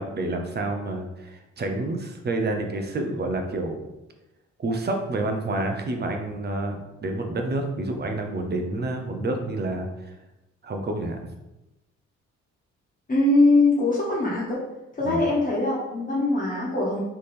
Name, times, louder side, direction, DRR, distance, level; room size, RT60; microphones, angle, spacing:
voice 1, 0.0-3.8 4.6-9.9 10.6-11.3 15.0-15.2, right 2 dB, 35° right, 4 dB, 0.7 m, -28 dB
voice 2, 13.1-14.6 14.9-17.0, left 2 dB, 25° left, -6 dB, 1.5 m, -22 dB
3.6 x 3.3 x 4.3 m, 0.96 s
cardioid pair, 90°, 30 cm